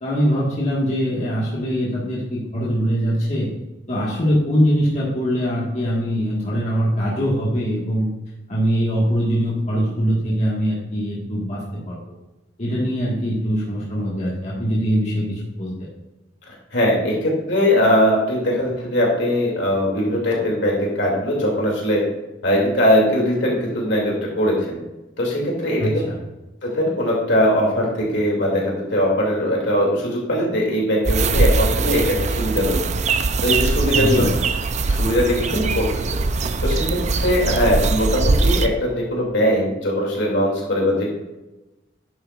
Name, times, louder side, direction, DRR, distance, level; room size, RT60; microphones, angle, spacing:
voice 1, 0.0-3.5 3.9-8.1 8.5-12.0 12.6-15.9 25.8-26.2 33.9-34.3, equal, 40° left, -6 dB, 1.8 m, -22 dB
voice 2, 16.5-22.0 22.4-24.8 25.2-26.0 26.6-32.8 33.4-34.2 34.8-36.2 36.6-41.1, equal, 65° left, -2 dB, 2.8 m, -20 dB
sound 1, 31.0-38.7, right 3 dB, 40° right, 0.5 m, -21 dB
10.0 x 7.7 x 2.5 m, 1.0 s
head